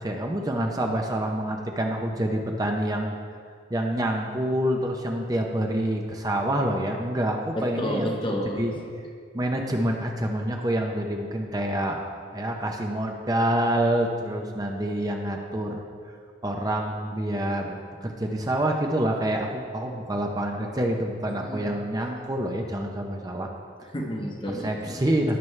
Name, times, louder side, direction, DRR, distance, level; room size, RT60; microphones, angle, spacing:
voice 1, 0.0-3.2 3.7-8.1 8.6-8.7 9.3-12.1 12.3-15.8 16.4-23.5 23.8-23.9 24.6-25.4, right 1 dB, 20° right, 2 dB, 0.7 m, -27 dB
voice 2, 7.5-8.8 21.4-21.8 23.9-25.1, equal, 30° left, 1 dB, 1.1 m, -31 dB
18.0 x 6.1 x 3.3 m, 2.1 s
head